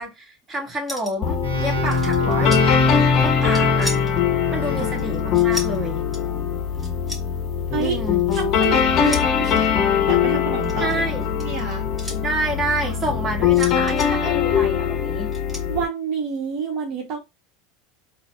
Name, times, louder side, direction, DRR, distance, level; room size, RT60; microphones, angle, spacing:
voice 1, 0.0-3.9 4.5-6.0 7.8-8.3 10.8-11.3 12.2-15.3, right 1 dB, 25° right, 1.5 m, -28 dB
sound 1, 0.9-1.3 1.6-2.6 3.2-4.2 4.9-5.8 6.1-6.3 6.8-7.2 7.8-8.7 9.0-9.7 10.5-12.2 13.5-14.1 15.3-15.6, left 1 dB, 5° right, 1.4 m, -34 dB
sound 2, 1.2-15.8, left 8 dB, 45° left, 0.6 m, -22 dB
sound 3, 1.4-5.0, left 2 dB, 90° right, 1.0 m, -23 dB
voice 2, 8.3-9.5 10.1-11.0 11.4-11.9 12.8-13.0 15.7-17.2, right 6 dB, 55° right, 1.1 m, -28 dB
4.0 x 2.2 x 2.4 m
hypercardioid pair, 85°, 0 cm